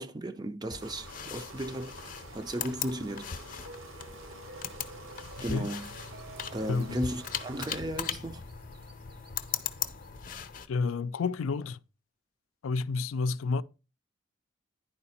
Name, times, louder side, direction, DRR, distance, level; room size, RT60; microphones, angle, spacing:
voice 1, 0.0-2.0 2.3-3.4 5.4-5.9 6.5-8.4, right 1 dB, 20° right, 0.5 m, -35 dB
sound 1, 0.7-10.7, left 8 dB, 40° left, 0.7 m, -39 dB
sound 2, 0.8-7.8, right 3 dB, 80° right, 0.8 m, -50 dB
sound 3, 3.5-10.1, right 2 dB, 50° right, 0.7 m, -53 dB
voice 2, 6.7-7.0 10.7-11.8 12.6-13.6, left 4 dB, 90° left, 0.4 m, -30 dB
10.0 x 4.8 x 4.2 m
head